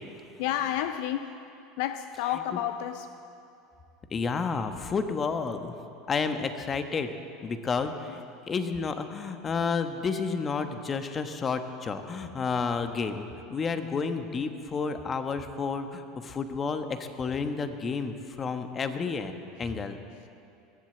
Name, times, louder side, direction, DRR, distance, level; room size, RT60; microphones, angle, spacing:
voice 1, 0.4-1.4 1.8-3.1 20.2-20.3, left 11 dB, 70° left, 10 dB, 0.5 m, -30 dB
voice 2, 4.1-5.7 6.1-7.1 7.4-19.3 19.6-20.0, left 5 dB, 30° left, 8 dB, 1.2 m, -31 dB
22.0 x 7.6 x 7.8 m, 2.7 s
hypercardioid pair, 90°, 0 cm